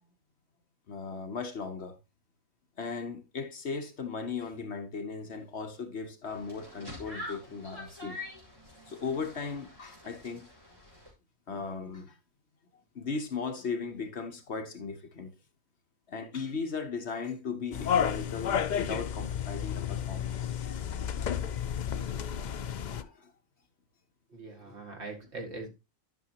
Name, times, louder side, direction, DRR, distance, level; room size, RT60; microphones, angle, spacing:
voice 1, 0.9-2.0 2.8-8.2 8.9-10.5 11.5-12.2 12.9-15.3 16.1-20.8 22.7-23.3, left 5 dB, 55° left, 1.2 m, -37 dB
sound 1, 6.2-11.1, left 1 dB, 15° right, 3.8 m, -46 dB
sound 2, 17.7-23.0, left 8 dB, 70° left, 0.4 m, -32 dB
voice 2, 24.3-25.7, right 3 dB, 55° right, 2.4 m, -41 dB
11.5 x 6.0 x 2.9 m
omnidirectional pair, 1.4 m